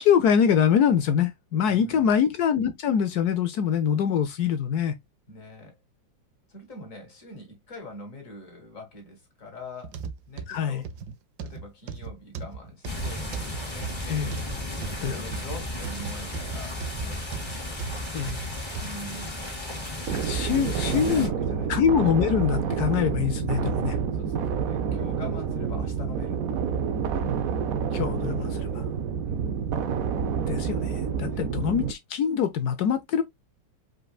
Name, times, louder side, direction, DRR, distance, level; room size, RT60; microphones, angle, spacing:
voice 1, 0.0-5.0 10.5-10.8 14.1-14.4 15.0-15.2 18.1-18.4 20.1-21.3 21.7-24.0 27.9-28.8 30.5-33.2, left 8 dB, 75° left, 0.9 m, -24 dB
voice 2, 1.7-2.2 5.3-5.8 6.5-10.0 10.3-10.9 11.4-14.0 14.5-17.3 18.8-19.5 20.5-21.7 24.2-26.7 29.3-29.7 31.3-31.5, left 1 dB, 40° left, 2.6 m, -43 dB
sound 1, 9.8-19.0 19.5-19.6 20.3-20.4, right 5 dB, 65° right, 1.1 m, -36 dB
sound 2, 12.8-21.3, left 1 dB, 15° left, 1.9 m, -35 dB
sound 3, 20.1-31.9, right 6 dB, 85° right, 0.7 m, -28 dB
5.0 x 4.5 x 2.3 m
omnidirectional pair, 2.3 m